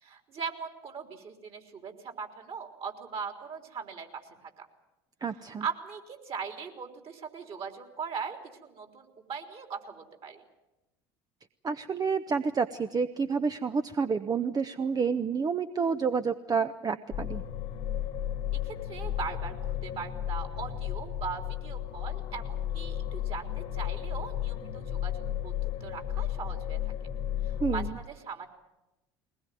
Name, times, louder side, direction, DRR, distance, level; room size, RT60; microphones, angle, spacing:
voice 1, 0.0-4.7 5.3-10.4 18.6-26.9 27.4-28.5, right 6 dB, 45° right, 5 dB, 3.7 m, -40 dB
voice 2, 5.2-5.6 11.6-17.4 27.6-28.0, right 5 dB, 30° right, 10 dB, 0.9 m, -29 dB
sound 1, 17.1-27.9, left 11 dB, 60° left, 1.8 m, -33 dB
21.5 x 19.5 x 9.3 m, 1.0 s
hypercardioid pair, 70°, 13 cm